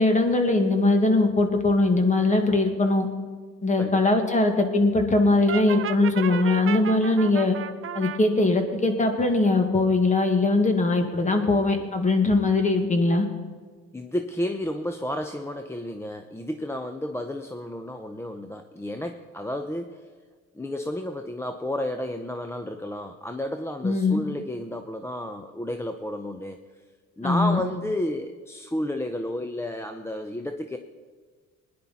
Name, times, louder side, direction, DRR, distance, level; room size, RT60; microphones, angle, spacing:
voice 1, 0.0-3.1 3.6-7.6 7.9-13.3 23.8-24.2 27.2-27.6, left 2 dB, 25° left, 5 dB, 1.9 m, -21 dB
Brass instrument, 5.5-8.2, right 9 dB, 45° right, 0.8 m, -33 dB
voice 2, 13.9-20.1 20.5-26.6 27.2-30.8, left 1 dB, 10° left, 6 dB, 0.7 m, -31 dB
20.5 x 10.5 x 4.3 m, 1.5 s
cardioid pair, 100°, 29 cm